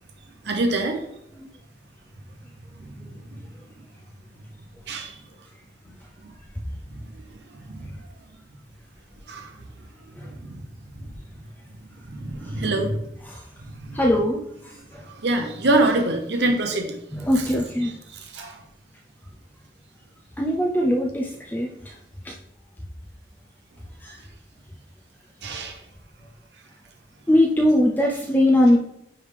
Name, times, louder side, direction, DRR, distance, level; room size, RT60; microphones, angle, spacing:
voice 1, 0.4-1.0 2.8-2.9 4.9-5.2 6.2-6.3 7.5-7.9 9.3-9.5 10.4-10.6 12.1-13.0 13.8-14.0 15.1-17.0 18.3-18.6 25.4-25.8, right 2 dB, 75° right, 4 dB, 0.8 m, -25 dB
voice 2, 13.9-15.1 17.1-17.9 20.4-22.0 22.2-22.3 24.0-24.2 27.3-28.8, left 1 dB, 10° left, -1 dB, 0.5 m, -22 dB
9.6 x 3.4 x 3.4 m, 0.77 s
head